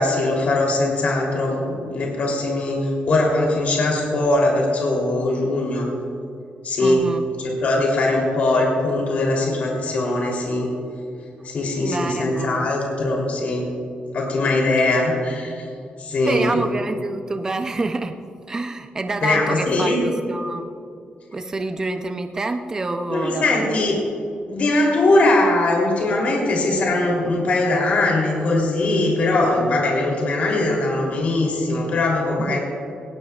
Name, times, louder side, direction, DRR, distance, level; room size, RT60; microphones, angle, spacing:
voice 1, 0.0-5.9 6.6-7.1 7.4-10.7 11.4-13.7 14.1-15.5 16.0-16.5 19.2-20.0 23.1-24.0 24.5-32.6, left 2 dB, 50° left, -2 dB, 3.2 m, -21 dB
voice 2, 6.8-7.3 11.4-11.5 11.8-12.7 16.2-18.2 18.5-20.7 21.3-23.8 32.5-32.6, right 2 dB, 20° right, 7 dB, 0.5 m, -27 dB
19.0 x 17.5 x 2.4 m, 2.5 s
wide cardioid pair, 170°, 3 cm